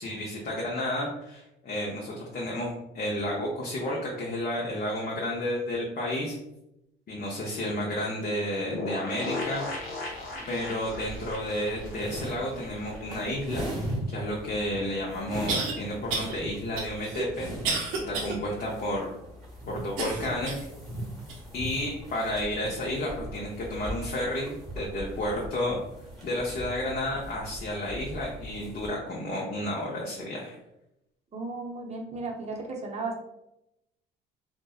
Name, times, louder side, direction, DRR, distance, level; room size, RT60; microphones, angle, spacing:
voice 1, 0.0-6.4 7.1-9.7 10.5-13.7 14.1-17.5 18.0-19.1 19.7-20.6 21.5-25.8 26.2-30.5, left 1 dB, 45° left, -3 dB, 0.6 m, -31 dB
sound 1, 8.7-13.3 13.6-13.7 13.9-14.0, left 2 dB, 70° left, 0.9 m, -37 dB
sound 2, 9.4-28.9, right 1 dB, ahead, 1.1 m, -40 dB
sound 3, 14.5-14.6 15.5-15.7 16.1-16.3 16.8-18.4 18.8-18.9 20.0-20.7 21.3-21.4 22.2-22.3, right 4 dB, 80° right, 0.6 m, -31 dB
voice 2, 31.3-33.2, right 3 dB, 30° right, 0 dB, 0.6 m, -35 dB
2.5 x 2.1 x 2.3 m, 0.87 s
supercardioid pair, 80°, 21 cm